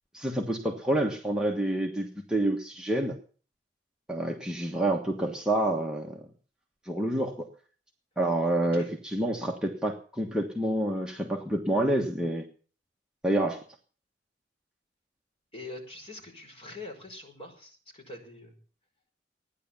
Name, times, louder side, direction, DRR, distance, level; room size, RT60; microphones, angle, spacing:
voice 1, 0.1-3.2 4.1-6.2 6.8-7.5 8.2-12.4 13.2-13.6, right 1 dB, 5° right, -1 dB, 1.4 m, -28 dB
voice 2, 15.5-18.6, left 2 dB, 35° left, 2 dB, 4.8 m, -44 dB
15.0 x 10.5 x 7.2 m, 0.41 s
head